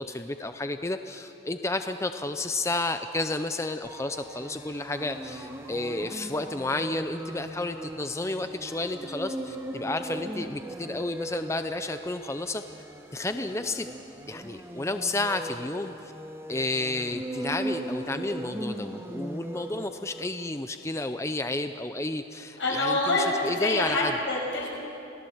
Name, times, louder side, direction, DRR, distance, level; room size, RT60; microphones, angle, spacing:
voice 1, 0.0-12.8 13.1-13.9 14.3-16.1 16.5-24.1, left 2 dB, 15° left, 8 dB, 0.5 m, -31 dB
sound 1, 3.8-20.4, right 1 dB, 15° right, 1.3 m, -39 dB
voice 2, 22.6-24.7, left 2 dB, 80° left, -1 dB, 6.4 m, -26 dB
26.5 x 18.0 x 7.2 m, 2.9 s
head